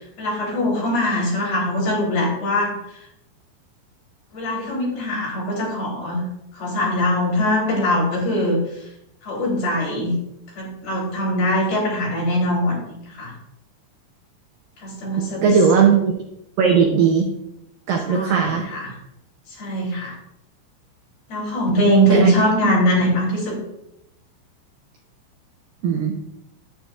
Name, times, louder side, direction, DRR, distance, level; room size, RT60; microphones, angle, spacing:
voice 1, 0.0-2.7 4.3-6.2 6.5-8.6 9.2-10.1 10.5-13.3 14.8-15.6 18.1-19.0 19.5-20.1 21.3-23.6, equal, 55° left, -5 dB, 5.6 m, -22 dB
voice 2, 15.4-16.1 16.6-17.3 17.9-18.7 22.1-22.3 25.8-26.1, right 6 dB, 90° right, 0 dB, 1.9 m, -17 dB
10.5 x 9.3 x 2.5 m, 0.81 s
omnidirectional pair, 5.3 m